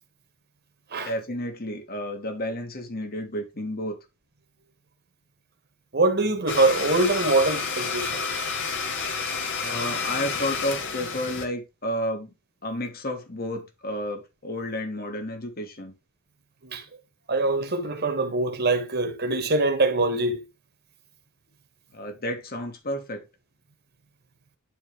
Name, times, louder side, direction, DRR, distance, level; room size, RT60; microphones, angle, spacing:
voice 1, 1.0-4.0 9.6-12.3 12.6-15.9 21.9-23.3, left 1 dB, 45° left, 2.4 m, -31 dB
voice 2, 5.9-8.3 16.6-16.8 17.3-20.4, right 2 dB, 50° right, 1.8 m, -23 dB
Domestic sounds home sounds, 6.5-11.4, left 5 dB, 60° left, 2.1 m, -30 dB
11.5 x 4.0 x 3.3 m
head